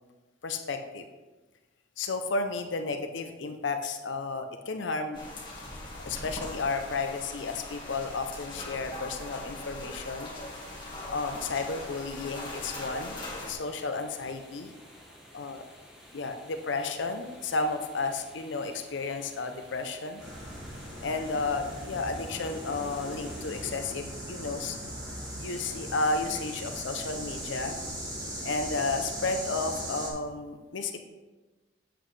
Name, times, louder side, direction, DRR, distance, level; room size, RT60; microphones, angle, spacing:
voice 1, 0.4-1.0 2.0-5.2 6.0-10.3 11.1-13.2 13.5-14.7 15.3-15.6 16.1-20.2 21.0-24.8 25.4-27.8 28.4-31.0, left 3 dB, 75° left, 6 dB, 0.6 m, -32 dB
sound 1, 5.1-13.5, left 1 dB, 25° left, 1.8 m, -41 dB
sound 2, 10.4-23.8, equal, 5° right, 1.4 m, -53 dB
sound 3, 20.2-30.1, equal, 20° right, 1.9 m, -39 dB
8.1 x 7.8 x 3.2 m, 1.2 s
head